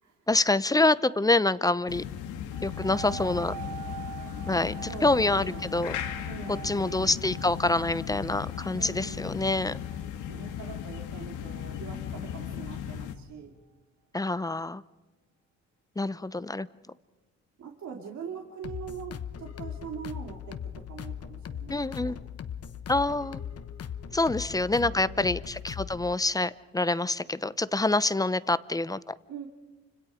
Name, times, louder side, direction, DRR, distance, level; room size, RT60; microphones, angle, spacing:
voice 1, 0.3-2.0 2.6-3.5 4.5-6.0 6.6-9.8 14.1-14.8 16.0-16.7 21.7-22.2 22.9-23.4 24.1-29.1, left 2 dB, 10° left, 16 dB, 0.7 m, -26 dB
sound 1, 1.9-13.2, left 9 dB, 90° left, 1.7 m, -37 dB
sound 2, 2.5-11.8 12.4-12.5, right 9 dB, 80° right, 1.6 m, -45 dB
voice 2, 4.9-5.7 6.3-7.2 8.7-9.4 10.3-13.5 17.6-22.2 24.1-24.2 24.8-25.3 29.3-29.5, right 7 dB, 65° right, 1 dB, 2.7 m, -43 dB
sound 3, 18.6-26.1, left 8 dB, 50° left, 1.1 m, -39 dB
29.0 x 26.0 x 5.1 m, 1.2 s
cardioid pair, 90°, 30 cm